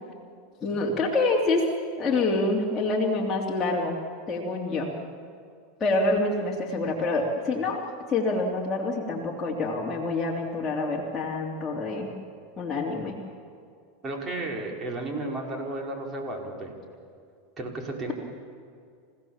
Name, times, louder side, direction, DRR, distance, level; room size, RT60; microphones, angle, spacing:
voice 1, 0.6-1.6 2.0-4.0 4.3-4.9 5.8-7.8 8.1-12.1 12.6-13.1, left 2 dB, 20° left, -4 dB, 3.0 m, -26 dB
voice 2, 14.0-16.7 17.6-18.1, right 2 dB, 30° right, 1 dB, 5.0 m, -33 dB
29.5 x 16.5 x 7.3 m, 2.3 s
hypercardioid pair, 110°, 0 cm